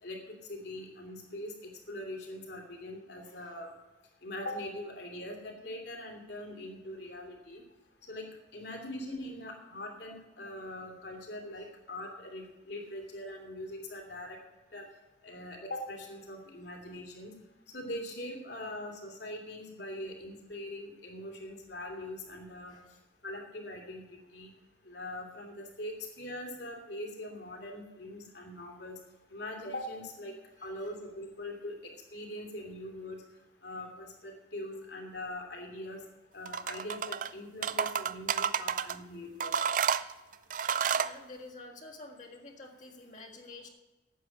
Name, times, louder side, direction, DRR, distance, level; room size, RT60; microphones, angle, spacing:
voice 1, 0.0-3.7 4.2-7.6 8.1-14.4 14.7-14.9 15.2-17.3 17.7-22.7 23.2-24.0 24.3-24.5 24.8-29.0 29.3-30.3 30.6-31.7 32.1-33.2 33.6-36.0 36.3-39.5, left 1 dB, 65° left, 1 dB, 2.9 m, -42 dB
voice 2, 3.2-3.5 11.6-11.7 22.6-22.9 30.6-30.7 38.6-38.8 40.9-43.7, left 2 dB, 45° left, 1 dB, 1.7 m, -49 dB
sound 1, 36.5-37.3 37.6-39.0 39.4-41.1, right 7 dB, 45° right, 0.4 m, -30 dB
9.3 x 8.1 x 8.7 m, 1.1 s
head